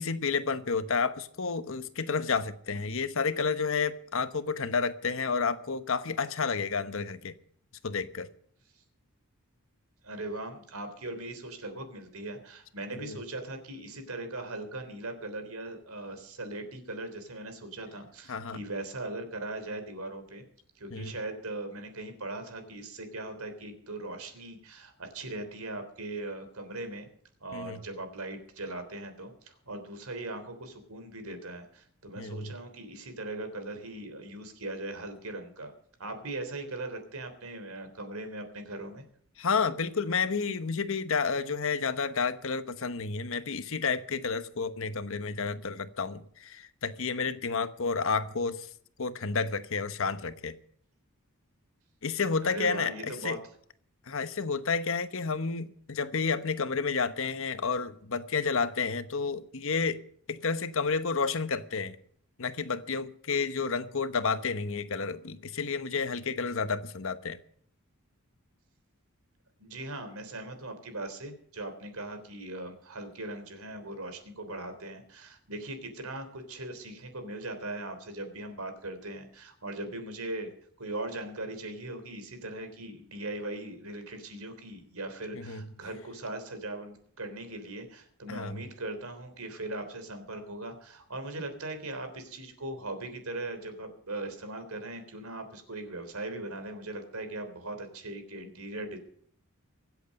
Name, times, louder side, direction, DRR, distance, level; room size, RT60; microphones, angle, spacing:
voice 1, 0.0-7.3 7.8-8.3 12.9-13.2 18.3-18.6 20.9-21.1 27.5-27.8 32.2-32.5 39.4-48.7 49.0-50.6 52.0-53.4 54.1-60.0 60.3-62.0 62.4-67.4 85.3-85.7 88.3-88.6, left 5 dB, 65° left, 1.0 m, -30 dB
voice 2, 10.0-20.4 20.8-27.1 27.4-35.7 36.0-39.0 52.4-53.4 69.6-80.5 80.8-99.0, right 2 dB, 80° right, 3.4 m, -39 dB
24.5 x 8.2 x 5.3 m
head